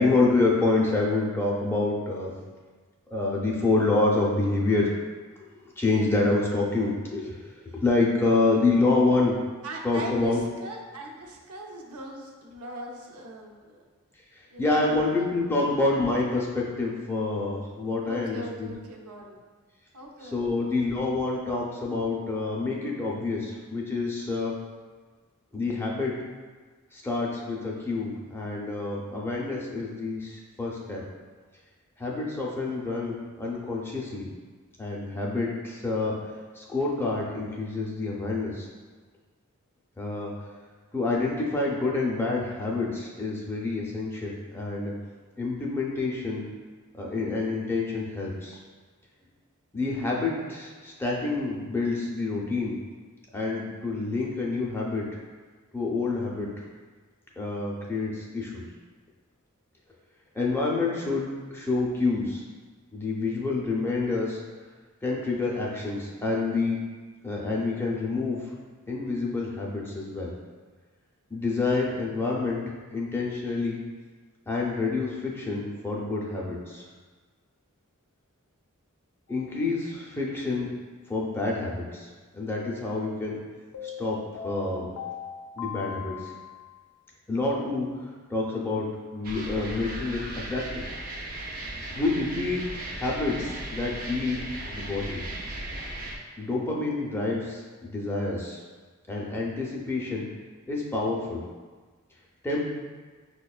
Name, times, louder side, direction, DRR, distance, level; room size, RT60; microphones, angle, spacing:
voice 1, 0.0-2.4 3.1-4.9 5.4-5.5 5.8-7.5 7.8-9.4 9.8-10.4 14.4-18.7 20.2-24.5 25.5-26.1 26.9-31.0 32.0-34.3 34.8-36.2 36.6-38.7 40.0-40.3 40.9-44.9 45.4-46.4 46.9-48.6 49.7-52.8 53.3-55.0 55.7-56.5 57.4-58.6 60.3-62.4 62.9-64.4 65.0-66.8 67.2-68.4 68.9-70.3 71.3-72.6 72.9-73.8 74.5-76.8 79.3-80.7 81.1-83.4 84.0-84.9 85.6-86.3 87.3-88.9 89.1-90.9 91.9-95.2 96.4-98.6 99.1-100.3 100.7-101.4 102.4-102.7, left 3 dB, 10° left, -3 dB, 0.5 m, -27 dB
voice 2, 9.6-13.8 14.5-14.9 15.2-15.3 15.6-15.8 18.0-19.4 19.9-20.9, right 1 dB, 85° right, 0 dB, 0.6 m, -41 dB
sound 1, 79.3-79.6 83.7-86.8, left 8 dB, 75° left, 0.4 m, -39 dB
sound 2, 89.2-96.2, right 1 dB, 45° right, 0.5 m, -36 dB
5.9 x 2.2 x 2.3 m, 1.4 s
head